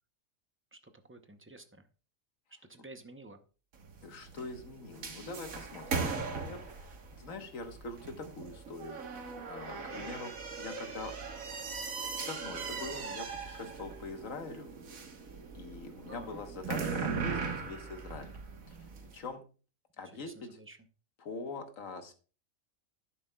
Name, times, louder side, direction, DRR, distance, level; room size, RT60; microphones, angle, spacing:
voice 1, 0.7-1.9 2.7-3.4 9.8-10.1 16.1-16.4 20.1-20.8, right 2 dB, 20° right, 7 dB, 0.4 m, -51 dB
sound 1, 3.7-19.1, right 5 dB, 85° right, 1.7 m, -39 dB
voice 2, 4.0-10.3 10.6-11.2 12.2-14.7 15.5-18.4 18.7-19.4 20.0-20.5 21.2-22.1, left 3 dB, 75° left, 7 dB, 1.6 m, -44 dB
11.0 x 9.4 x 2.3 m, 0.36 s
omnidirectional pair, 1.4 m